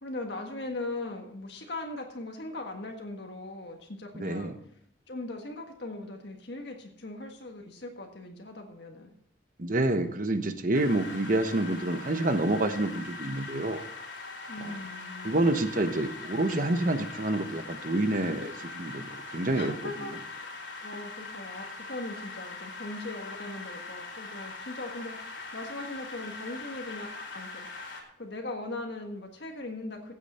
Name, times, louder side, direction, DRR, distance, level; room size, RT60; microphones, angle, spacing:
voice 1, 0.0-4.5 5.1-9.1 14.5-15.5 19.5-27.9 28.2-30.1, left 2 dB, 65° left, 2 dB, 1.6 m, -39 dB
voice 2, 4.1-4.6 9.6-13.8 14.6-14.7 15.2-19.7, right 2 dB, 45° right, 8 dB, 1.1 m, -28 dB
sound 1, 10.7-28.0, left 3 dB, 90° left, 3.2 m, -42 dB
16.0 x 8.7 x 4.4 m, 0.69 s
head